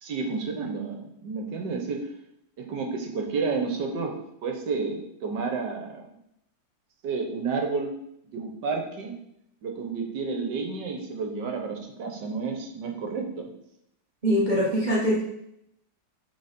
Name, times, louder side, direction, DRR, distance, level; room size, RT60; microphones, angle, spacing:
voice 1, 0.0-2.1 2.6-4.1 4.4-6.1 7.0-8.0 8.3-9.1 9.6-13.5, right 4 dB, 70° right, 3 dB, 1.5 m, -31 dB
voice 2, 14.2-15.2, equal, 30° right, -5 dB, 1.0 m, -23 dB
6.8 x 4.0 x 5.1 m, 0.77 s
omnidirectional pair, 2.1 m